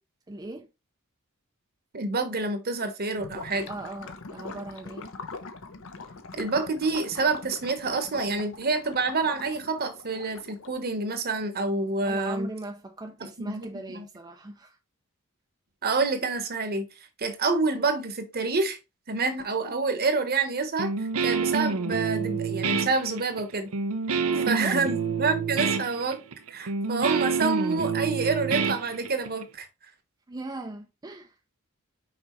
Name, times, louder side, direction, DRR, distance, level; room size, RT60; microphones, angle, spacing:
voice 1, 0.3-0.7 3.7-5.1 12.0-14.8 24.1-24.8 30.3-31.4, right 2 dB, 20° right, 0.5 m, -39 dB
voice 2, 1.9-3.7 6.4-12.5 13.4-13.7 13.9-14.0 15.8-16.9 17.2-18.8 19.1-23.7 24.5-26.2 26.5-29.7, right 3 dB, 45° right, 1.1 m, -27 dB
Gurgling / Liquid, 3.1-10.9, left 3 dB, 65° left, 0.9 m, -42 dB
Guitar, 20.8-29.4, right 5 dB, 80° right, 0.7 m, -28 dB
6.0 x 4.9 x 3.1 m
head